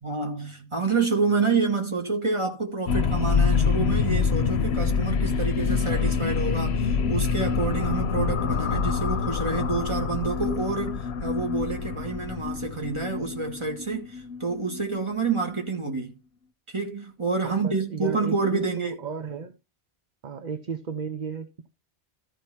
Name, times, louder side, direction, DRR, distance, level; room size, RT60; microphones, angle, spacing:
voice 1, 0.0-16.1 16.7-19.0, right 4 dB, 30° right, 2.4 m, -28 dB
sound 1, 2.9-15.7, left 5 dB, 90° left, 1.0 m, -26 dB
voice 2, 17.4-19.6 20.2-21.7, right 5 dB, 50° right, 0.9 m, -34 dB
13.5 x 4.9 x 4.4 m
omnidirectional pair, 1.1 m